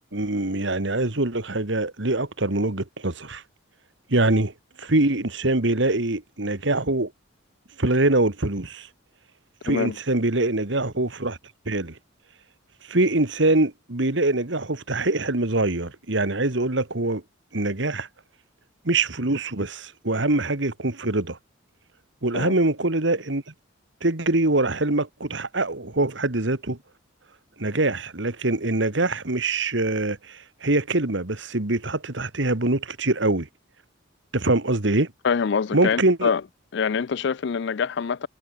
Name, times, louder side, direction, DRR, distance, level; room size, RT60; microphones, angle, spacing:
voice 1, 0.1-3.4 4.1-4.5 4.8-7.1 7.8-8.9 9.6-11.4 11.7-12.0 12.9-17.2 17.5-18.1 18.8-21.4 22.2-23.4 24.0-26.8 27.6-33.5 34.3-35.1 35.7-36.3, right 2 dB, 65° right, 1.9 m, -24 dB
voice 2, 35.2-36.4 36.7-38.3, left 6 dB, 60° left, 0.4 m, -25 dB
head